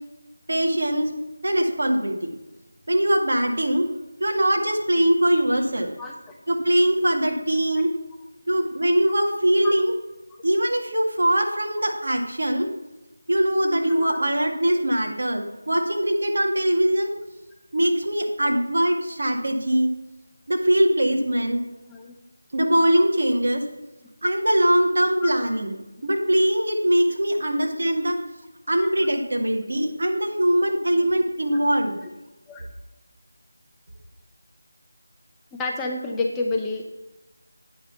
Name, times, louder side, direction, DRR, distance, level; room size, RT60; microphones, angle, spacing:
voice 1, 0.5-1.1 1.4-2.3 2.9-3.9 4.2-5.9 6.5-7.9 8.5-9.9 10.4-12.7 13.3-17.1 17.7-19.9 20.5-21.6 22.5-23.6 24.2-25.7 26.0-28.2 28.7-32.0, right 1 dB, 65° right, 2 dB, 1.9 m, -22 dB
voice 2, 6.0-6.3 9.6-9.7 13.9-14.2 21.9-22.1 25.2-25.3 28.8-28.9 32.5-32.7 35.6-36.8, left 3 dB, 5° left, 0 dB, 0.6 m, -29 dB
9.1 x 5.7 x 5.7 m, 1.0 s
figure-of-eight pair, 170°, 0 cm